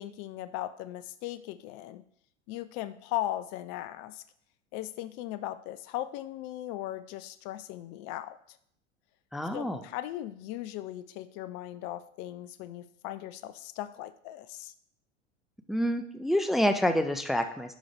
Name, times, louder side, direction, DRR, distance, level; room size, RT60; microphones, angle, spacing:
voice 1, 0.0-2.0 2.5-4.2 4.7-8.6 9.5-14.7, left 13 dB, 45° left, 14 dB, 0.6 m, -38 dB
voice 2, 9.3-9.8 15.7-17.7, equal, ahead, 7 dB, 0.5 m, -27 dB
11.0 x 5.3 x 3.5 m, 0.67 s
hypercardioid pair, 85°, 36 cm